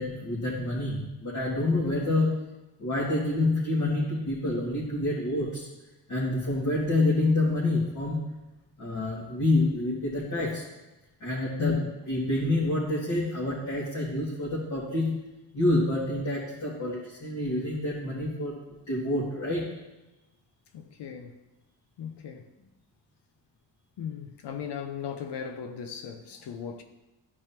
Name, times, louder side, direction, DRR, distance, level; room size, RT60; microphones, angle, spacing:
voice 1, 0.0-2.4 2.8-5.7 6.1-8.4 8.8-10.7 11.2-15.1 15.5-19.7, left 2 dB, 40° left, 2.2 m, -28 dB
voice 2, 11.6-11.9 20.7-21.4 22.0-22.5 24.0-26.8, left 7 dB, 65° left, 0.8 m, -36 dB
12.0 x 4.6 x 2.9 m
cardioid pair, 75°, 44 cm